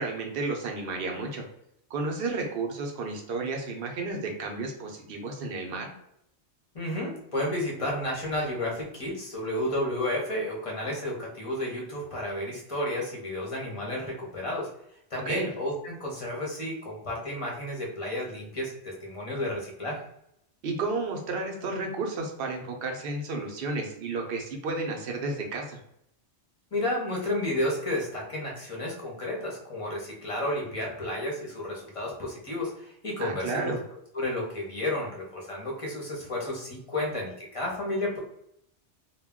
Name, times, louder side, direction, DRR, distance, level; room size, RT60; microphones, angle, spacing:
voice 1, 0.0-1.5 1.9-5.9 15.2-15.5 20.6-25.8 33.2-33.8, right 3 dB, 65° right, 2 dB, 0.7 m, -32 dB
voice 2, 6.7-14.7 15.1-20.0 26.7-33.7 34.1-38.2, left 1 dB, 35° left, -3 dB, 0.7 m, -32 dB
2.2 x 2.1 x 3.5 m, 0.75 s
omnidirectional pair, 1.1 m